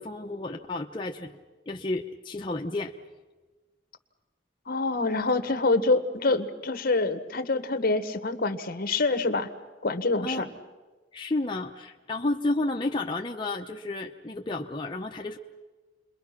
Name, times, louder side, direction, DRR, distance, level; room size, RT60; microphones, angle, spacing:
voice 1, 0.0-1.4 1.7-2.9 10.2-10.5 11.1-15.4, left 2 dB, 25° left, 1 dB, 0.8 m, -31 dB
voice 2, 4.7-9.5 9.8-10.5, left 3 dB, 55° left, 10 dB, 1.4 m, -26 dB
29.5 x 22.5 x 5.9 m, 1.3 s
head